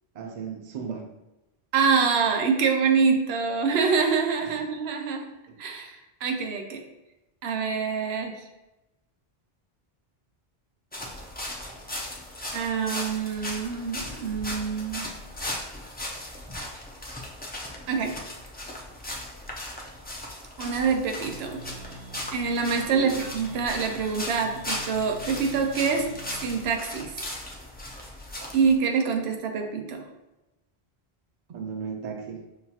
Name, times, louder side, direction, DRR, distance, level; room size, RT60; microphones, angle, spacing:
voice 1, 0.1-1.1 4.5-4.6 5.5-5.6 22.9-23.2 31.5-32.4, right 6 dB, 50° right, 3 dB, 0.6 m, -35 dB
voice 2, 1.7-5.3 5.6-6.8 7.4-8.4 12.5-15.1 17.9-18.2 20.6-21.6 22.3-27.1 28.5-30.1, right 5 dB, 90° right, 3 dB, 0.8 m, -25 dB
sound 1, 10.9-28.7, left 1 dB, 15° left, 0.3 m, -37 dB
sound 2, 21.2-26.6, right 3 dB, 70° right, 1.4 m, -46 dB
5.7 x 2.3 x 2.8 m, 0.97 s
omnidirectional pair, 1.0 m